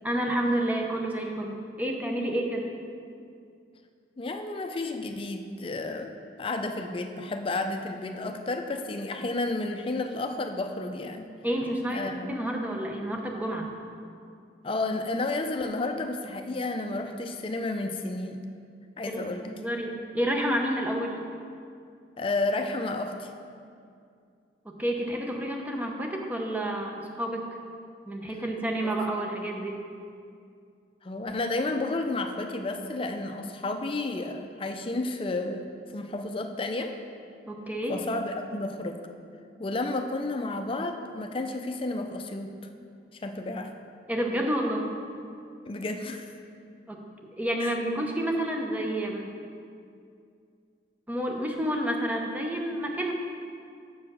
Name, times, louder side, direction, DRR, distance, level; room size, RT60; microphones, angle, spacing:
voice 1, 0.0-2.7 11.4-13.7 19.1-21.2 24.6-27.5 28.1-29.8 37.5-38.0 44.1-44.9 46.9-47.0 47.4-49.3 51.1-53.1, right 1 dB, 10° right, 1 dB, 0.7 m, -29 dB
voice 2, 4.2-6.1 6.4-11.3 11.9-12.3 14.6-18.4 19.0-19.7 22.2-23.3 28.8-28.9 31.0-35.6 35.9-36.9 37.9-39.0 39.6-42.6 43.1-43.7 45.7-46.3 47.6-47.8, left 2 dB, 30° left, 6 dB, 0.5 m, -31 dB
7.3 x 4.9 x 6.1 m, 2.4 s
head